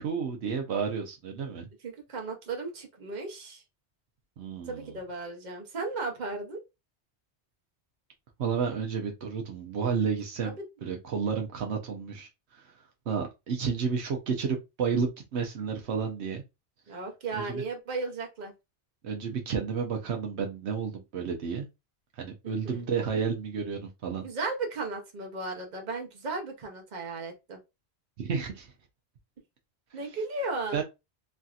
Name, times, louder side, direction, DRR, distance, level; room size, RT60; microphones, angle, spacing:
voice 1, 0.0-1.7 4.4-4.9 8.4-10.5 10.8-12.3 13.1-16.4 17.3-17.6 19.0-21.7 22.2-24.2 28.2-28.7 30.7-30.8, right 6 dB, 75° right, 1.0 m, -31 dB
voice 2, 1.8-3.6 4.6-6.6 10.4-10.6 16.9-18.5 22.4-22.8 24.2-27.6 29.9-30.8, right 3 dB, 45° right, 0.9 m, -35 dB
3.2 x 2.7 x 2.3 m
omnidirectional pair, 1.1 m